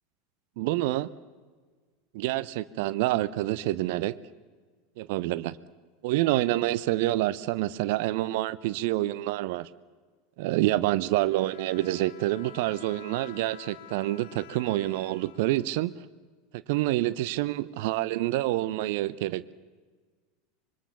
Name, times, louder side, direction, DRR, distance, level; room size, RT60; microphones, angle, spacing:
voice 1, 0.6-1.1 2.1-4.2 5.0-5.6 6.0-9.7 10.4-15.9 16.5-19.5, right 16 dB, 55° right, 18 dB, 0.7 m, -27 dB
Bowed string instrument, 11.1-16.1, left 12 dB, 60° left, 1.0 m, -50 dB
25.5 x 23.5 x 7.1 m, 1.5 s
figure-of-eight pair, 80°, 0 cm